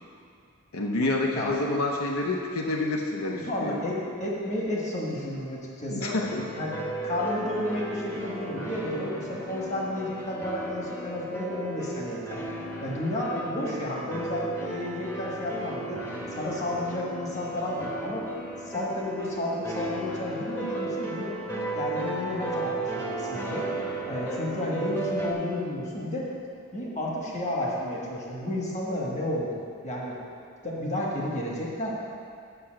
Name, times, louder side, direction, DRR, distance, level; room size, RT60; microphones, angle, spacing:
voice 1, 0.7-3.8 5.9-6.4, left 2 dB, 80° left, 0 dB, 0.7 m, -28 dB
voice 2, 3.4-6.1 6.5-6.7 7.0-12.4 12.8-16.0 16.3-18.3 18.6-21.4 21.7-23.7 24.1-26.3 26.7-30.2 30.6-31.9, left 1 dB, 30° left, -4 dB, 1.4 m, -31 dB
sound 1, 6.2-25.3, right 1 dB, 10° left, 0.9 m, -35 dB
6.8 x 5.8 x 7.5 m, 2.4 s
head